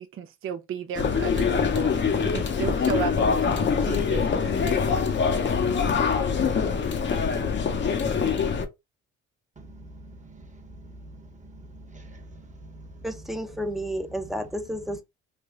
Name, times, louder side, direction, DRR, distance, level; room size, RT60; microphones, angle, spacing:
voice 1, 0.0-1.9 2.2-4.4 4.7-5.1, right 8 dB, 45° right, 0.5 m, -34 dB
sound 1, 0.9-8.7, left 6 dB, 40° left, 0.7 m, -24 dB
voice 2, 9.6-13.1, right 1 dB, 25° right, 1.1 m, -46 dB
voice 3, 13.0-15.0, equal, ahead, 0.7 m, -31 dB
3.4 x 2.2 x 3.6 m
cardioid pair, 90°, 30 cm